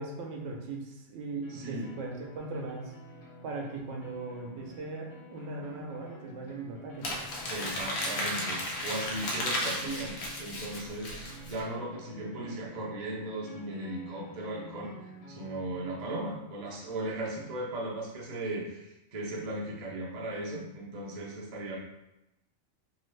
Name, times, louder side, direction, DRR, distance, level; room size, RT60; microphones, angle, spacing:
voice 1, 0.0-2.9 3.4-7.2, right 3 dB, 70° right, 1 dB, 0.9 m, -39 dB
sound 1, 1.4-16.2, equal, 55° left, 0.4 m, -50 dB
voice 2, 1.5-1.9 7.5-11.1 11.4-14.9 15.3-21.8, right 1 dB, 50° right, -3 dB, 0.5 m, -37 dB
Crumpling crinkling, 7.0-11.6, left 1 dB, 80° left, 1.1 m, -34 dB
2.8 x 2.4 x 3.1 m, 0.90 s
omnidirectional pair, 1.4 m